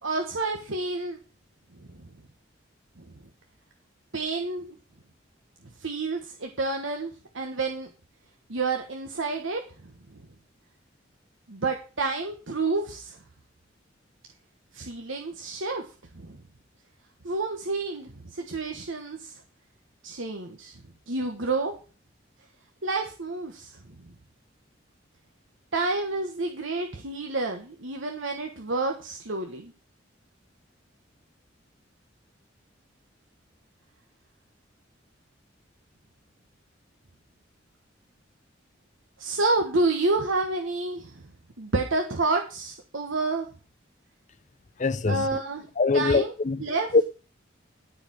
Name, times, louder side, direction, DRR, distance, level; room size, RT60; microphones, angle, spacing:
voice 1, 0.0-1.2 1.9-2.1 3.0-3.1 4.1-4.6 5.8-7.9 8.5-10.2 11.5-13.2 14.7-15.8 16.1-16.4 17.2-19.4 20.0-20.8 21.1-21.7 22.8-23.8 25.7-29.7 39.2-41.2 41.6-43.5 45.1-45.7 45.9-46.3 46.6-46.9, right 3 dB, 90° right, 1.4 m, -29 dB
voice 2, 44.8-45.4 45.8-46.7 46.9-47.0, left 3 dB, 40° left, 0.6 m, -23 dB
13.0 x 4.9 x 6.4 m
head